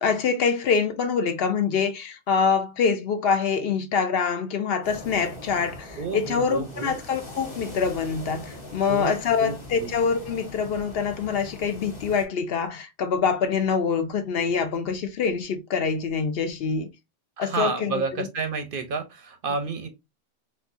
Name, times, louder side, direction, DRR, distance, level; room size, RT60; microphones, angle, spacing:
voice 1, 0.0-16.9 17.4-17.9 18.2-18.3, left 6 dB, 65° left, 0.7 m, -25 dB
sound 1, 4.8-12.2, left 1 dB, 25° left, 1.5 m, -41 dB
voice 2, 6.0-7.0 8.8-9.1 9.4-9.9 17.4-19.9, right 4 dB, 60° right, 0.7 m, -30 dB
4.1 x 2.3 x 2.5 m
omnidirectional pair, 1.2 m